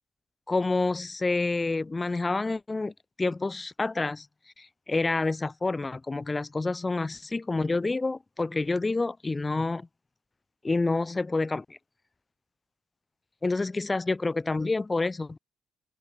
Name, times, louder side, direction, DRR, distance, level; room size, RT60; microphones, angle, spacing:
voice 1, 0.5-4.3 4.6-9.9 10.6-11.8 13.4-15.4, left 3 dB, 20° left, 4.0 m, -28 dB
cardioid pair, 90°, 0 cm